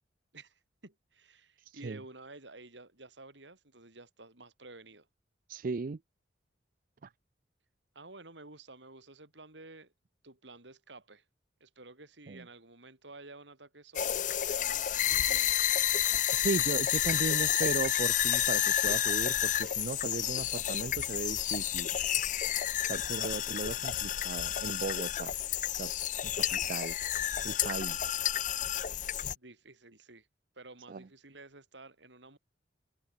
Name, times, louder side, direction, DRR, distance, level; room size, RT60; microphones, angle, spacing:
voice 1, 0.3-5.1 7.9-9.9 10.2-11.2 11.6-17.5 29.3-30.3 30.6-32.4, right 2 dB, 80° right, 4.3 m, -52 dB
voice 2, 1.7-2.0 5.5-6.0 7.0-7.1 12.3-12.4 16.3-21.9 22.9-25.3 25.8-25.9 26.2-26.9 27.4-28.2 30.9-31.0, right 4 dB, 50° right, 0.5 m, -36 dB
sound 1, 13.9-29.3, left 11 dB, 45° left, 0.6 m, -30 dB
head